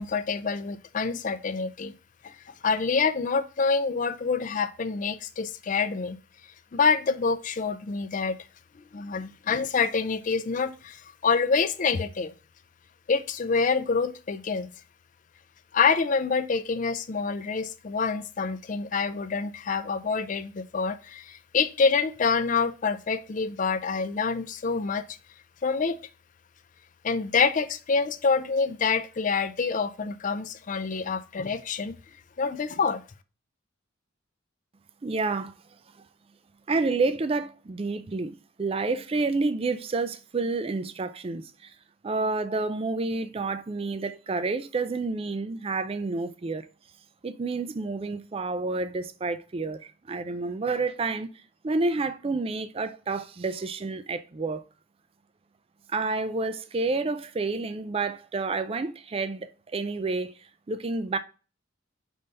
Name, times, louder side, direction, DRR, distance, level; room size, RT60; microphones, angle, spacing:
voice 1, 0.0-1.9 2.2-6.2 6.7-8.4 8.9-12.3 13.1-14.7 15.7-25.2 25.6-26.0 27.0-32.0 32.4-33.0, left 5 dB, 40° left, 0.4 m, -26 dB
voice 2, 35.0-35.5 36.0-36.1 36.7-41.7 42.0-46.7 47.2-51.3 51.6-54.6 55.9-60.4 60.7-61.2, right 3 dB, 25° right, 0.4 m, -29 dB
5.3 x 3.4 x 5.2 m
head